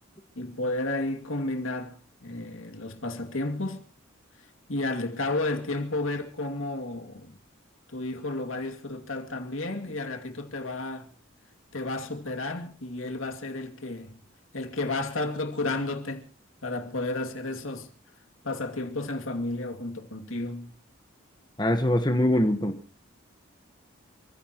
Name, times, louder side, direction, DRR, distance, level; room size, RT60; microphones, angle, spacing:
voice 1, 0.4-3.8 4.7-7.4 7.9-11.1 11.7-14.2 14.5-16.3 16.6-17.9 18.4-20.7, left 2 dB, 75° left, 2.5 m, -32 dB
voice 2, 21.6-22.8, left 1 dB, 20° left, 1.2 m, -23 dB
29.0 x 15.5 x 3.0 m
head